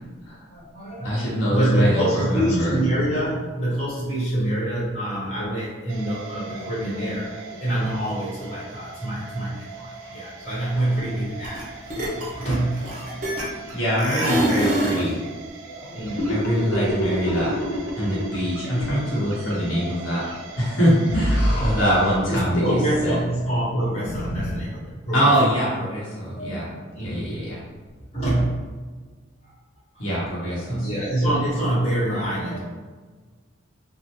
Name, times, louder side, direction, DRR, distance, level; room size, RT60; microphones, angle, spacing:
voice 1, 0.5-12.9 15.7-16.6 19.7-19.9 22.3-25.3 26.3-27.3 28.1-28.6 29.9-30.2 30.6-32.6, right 1 dB, 30° left, -9 dB, 1.1 m, -26 dB
voice 2, 1.0-2.8 13.7-15.2 16.3-17.5 18.0-20.2 20.6-23.2 25.1-26.7 27.0-27.6 30.0-30.9, equal, 75° left, -7 dB, 0.9 m, -23 dB
sound 1, 5.9-22.2, right 4 dB, 70° right, 0.4 m, -41 dB
sound 2, 11.4-11.6 11.9-13.7 14.0-15.1, right 1 dB, 40° right, 0.7 m, -24 dB
sound 3, 16.2-18.5 18.7-18.9 21.1-22.3 24.0-24.6, equal, 55° left, 0.5 m, -26 dB
3.1 x 2.1 x 2.8 m, 1.4 s
head